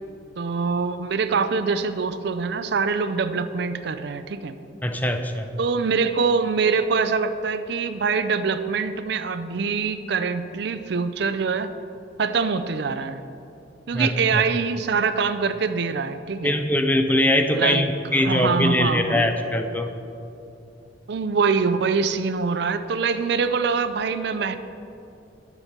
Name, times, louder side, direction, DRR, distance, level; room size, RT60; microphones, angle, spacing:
voice 1, 0.4-4.6 5.6-11.7 12.2-13.2 13.9-16.6 17.5-17.8 18.1-19.3 21.1-24.6, right 5 dB, 60° right, 11 dB, 0.5 m, -24 dB
voice 2, 4.8-5.5 13.9-14.4 16.4-17.9 18.1-19.9, left 1 dB, 10° left, 7 dB, 0.5 m, -22 dB
11.0 x 7.3 x 6.6 m, 2.8 s
head